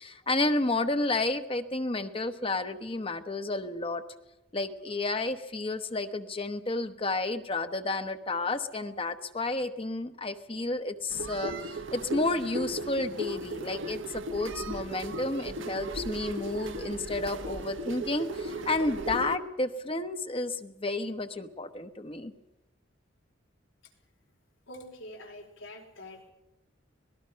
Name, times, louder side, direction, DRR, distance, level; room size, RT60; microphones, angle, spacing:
voice 1, 0.0-4.0 4.5-22.3, left 2 dB, 30° left, 9 dB, 1.0 m, -31 dB
sound 1, 11.1-19.4, right 2 dB, 75° right, 1.4 m, -36 dB
voice 2, 24.7-26.3, left 1 dB, 85° left, 1 dB, 4.8 m, -45 dB
25.5 x 19.0 x 5.7 m, 0.95 s
head